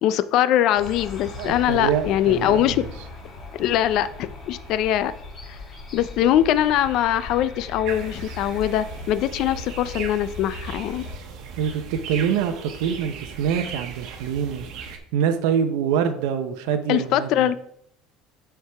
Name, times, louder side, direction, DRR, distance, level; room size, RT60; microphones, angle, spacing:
voice 1, 0.0-2.8 3.5-5.1 5.5-5.6 5.9-11.0 16.9-17.6, left 11 dB, 45° left, 14 dB, 0.4 m, -22 dB
sound 1, 0.7-11.1, left 3 dB, 25° left, 1.7 m, -38 dB
voice 2, 1.4-2.9 11.6-17.3, right 8 dB, 75° right, 8 dB, 0.7 m, -25 dB
sound 2, 7.8-15.0, right 6 dB, 50° right, 1.0 m, -38 dB
9.4 x 4.6 x 3.4 m, 0.69 s
cardioid pair, 170°, 0 cm